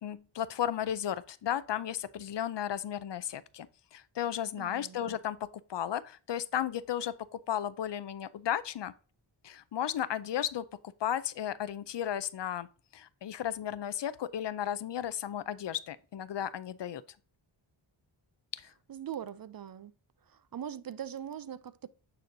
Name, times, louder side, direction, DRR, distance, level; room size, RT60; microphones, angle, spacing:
voice 1, 0.0-3.7 3.9-8.9 9.4-10.7 11.0-12.7 12.9-17.0 18.5-18.7, left 10 dB, 60° left, 0.6 m, -34 dB
voice 2, 4.6-5.0 18.9-19.9 20.2-21.9, right 9 dB, 45° right, 0.5 m, -41 dB
9.2 x 4.3 x 2.6 m
cardioid pair, 60°, 49 cm